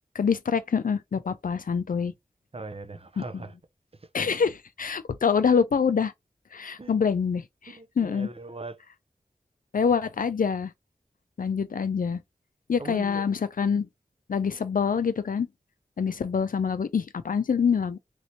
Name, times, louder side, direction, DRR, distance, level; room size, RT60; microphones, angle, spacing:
voice 1, 0.2-2.1 3.3-3.4 4.1-6.1 6.5-8.3 9.7-10.7 11.4-12.2 12.7-13.9 14.3-15.5 16.0-18.0, left 6 dB, 65° left, 0.4 m, -25 dB
voice 2, 2.5-3.5 4.2-4.5 6.8-7.0 7.7-8.8 12.8-13.2, right 2 dB, 40° right, 0.6 m, -40 dB
3.0 x 2.8 x 2.7 m
cardioid pair, 45°, 15 cm